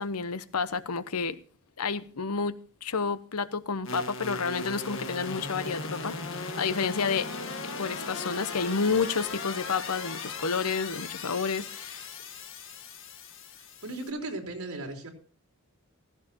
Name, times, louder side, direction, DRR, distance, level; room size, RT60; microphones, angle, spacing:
voice 1, 0.0-1.4 1.8-7.3 7.8-12.1, left 5 dB, 85° left, 0.9 m, -30 dB
sound 1, 3.8-14.1, left 3 dB, 60° left, 1.8 m, -38 dB
voice 2, 13.6-15.1, right 2 dB, 75° right, 4.1 m, -37 dB
15.5 x 15.0 x 2.9 m
head